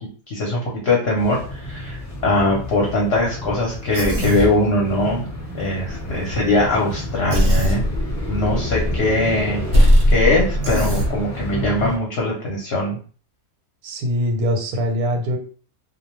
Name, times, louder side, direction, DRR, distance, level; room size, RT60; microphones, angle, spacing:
voice 1, 0.3-5.3 5.6-7.8 8.3-9.6 10.1-13.0, left 2 dB, 55° left, -2 dB, 0.8 m, -21 dB
sound 1, 1.2-12.0, left 1 dB, 20° left, 0.4 m, -30 dB
Human voice, 3.9-4.5 7.3-7.8 10.6-11.1, equal, 40° right, 0.7 m, -24 dB
sound 2, 5.9-6.5 7.0-9.1 9.4-9.5 9.7-11.2, equal, 70° right, 0.4 m, -19 dB
voice 2, 13.8-15.4, equal, 90° right, 3 dB, 1.1 m, -22 dB
2.3 x 2.2 x 2.9 m, 0.40 s
omnidirectional pair, 1.6 m